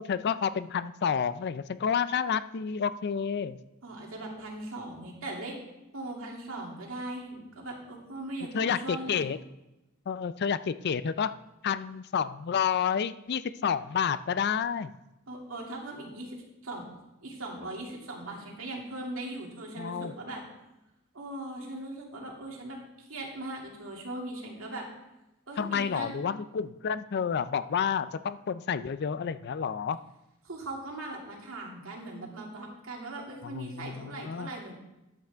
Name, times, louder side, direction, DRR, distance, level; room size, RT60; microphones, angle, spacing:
voice 1, 0.0-3.6 8.5-9.4 10.1-11.3 11.6-14.9 19.8-20.1 25.6-30.0 33.4-34.5, left 7 dB, 50° left, 14 dB, 0.4 m, -30 dB
voice 2, 3.8-5.6 5.9-9.2 15.3-16.9 17.2-20.4 21.1-24.9 25.5-26.2 30.4-34.7, right 2 dB, 75° right, -1 dB, 2.4 m, -39 dB
13.0 x 9.0 x 3.5 m, 0.97 s
head